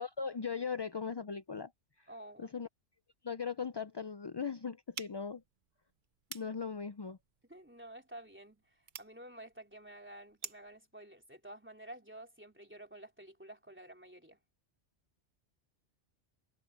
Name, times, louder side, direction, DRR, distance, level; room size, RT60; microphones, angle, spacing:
voice 1, 0.0-1.7 2.0-2.1 2.4-2.7 3.2-5.4 6.3-7.2, left 6 dB, 45° left, 0.3 m, -39 dB
voice 2, 2.1-2.5 7.5-14.4, right 1 dB, 10° right, 3.3 m, -51 dB
sound 1, 4.9-10.8, right 6 dB, 50° right, 1.0 m, -51 dB
omnidirectional pair, 1.2 m